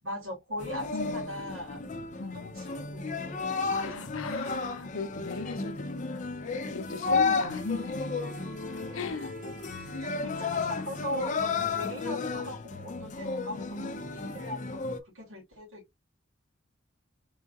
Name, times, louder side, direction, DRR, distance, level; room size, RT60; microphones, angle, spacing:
voice 1, 0.0-1.8 2.3-4.5 7.1-7.5 9.1-16.0, equal, 80° right, 2.5 m, -40 dB
sound 1, 0.6-15.0, left 4 dB, 35° left, 0.5 m, -33 dB
voice 2, 0.9-1.3 2.2-2.6 3.7-8.1 8.9-9.4 10.2-11.1 13.2-14.1, left 4 dB, 75° left, 0.7 m, -39 dB
Wind instrument woodwind instrument, 6.6-12.1, right 5 dB, 40° right, 0.9 m, -51 dB
3.9 x 3.6 x 2.3 m
head